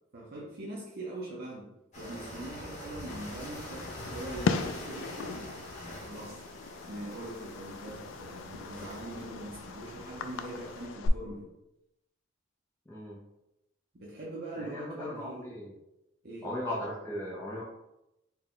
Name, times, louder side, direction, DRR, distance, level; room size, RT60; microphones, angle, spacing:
voice 1, 0.1-1.7 2.0-5.4 6.1-6.4 6.8-11.5 13.9-15.6 16.2-16.5, right 1 dB, 50° right, -5 dB, 0.7 m, -42 dB
sound 1, 1.9-10.9, equal, 35° left, 1.0 m, -45 dB
Fireworks, 3.1-11.1, left 5 dB, 65° left, 0.3 m, -38 dB
voice 2, 12.9-13.2 14.5-15.7 16.4-17.6, left 1 dB, 10° left, -6 dB, 0.5 m, -37 dB
4.2 x 2.2 x 3.7 m, 0.90 s
head